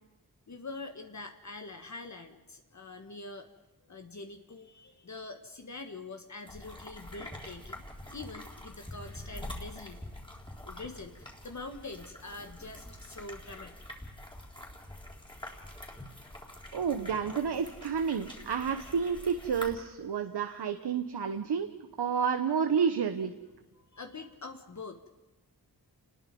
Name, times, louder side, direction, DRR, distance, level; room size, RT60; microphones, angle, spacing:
voice 1, 0.5-3.5 3.9-7.8 8.1-10.0 10.6-14.1 14.5-14.9 23.9-25.1, left 3 dB, 45° left, 5 dB, 1.7 m, -45 dB
sound 1, 6.5-19.7, left 1 dB, 10° left, 4.0 m, -46 dB
voice 2, 16.7-21.7 22.0-23.3, right 6 dB, 85° right, 8 dB, 1.2 m, -30 dB
30.0 x 20.5 x 5.4 m, 1.1 s
wide cardioid pair, 120°, 39 cm